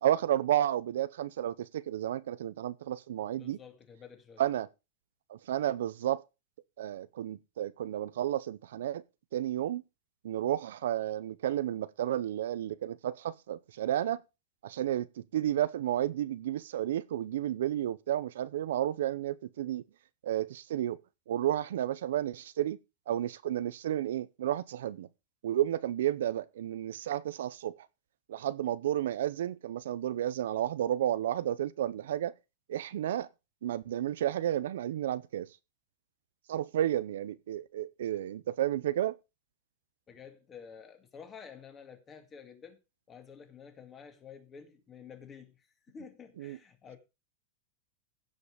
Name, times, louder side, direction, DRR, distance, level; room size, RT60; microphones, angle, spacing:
voice 1, 0.0-3.6 4.4-4.7 5.3-6.2 6.8-9.0 9.3-9.8 10.2-14.2 14.6-15.1 15.3-19.8 20.2-21.0 21.3-22.8 23.1-25.1 25.4-27.8 28.3-32.3 32.7-33.3 33.6-35.5 36.5-39.2 46.4-46.6, right 12 dB, 85° right, 0.7 m, -32 dB
voice 2, 3.4-4.4 40.1-42.8 43.1-47.0, left 6 dB, 20° left, 2.2 m, -50 dB
16.0 x 5.6 x 5.0 m
supercardioid pair, 165°, 0 cm